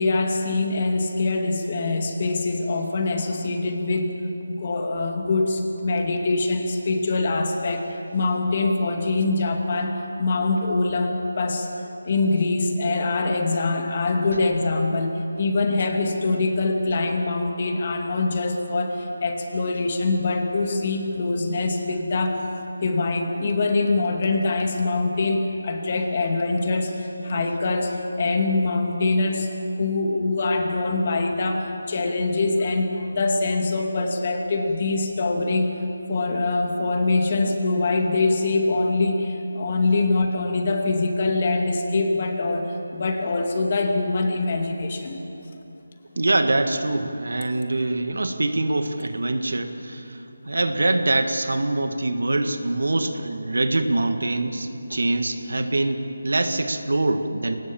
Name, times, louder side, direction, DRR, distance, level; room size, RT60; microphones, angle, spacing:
voice 1, 0.0-4.1 4.5-11.7 12.0-22.4 22.8-29.5 29.8-35.8 36.1-45.2 54.9-55.0, left 3 dB, 35° left, 3 dB, 2.4 m, -24 dB
voice 2, 46.2-57.6, right 2 dB, 80° right, 7 dB, 1.8 m, -24 dB
22.5 x 19.5 x 7.2 m, 2.9 s
figure-of-eight pair, 170°, 0 cm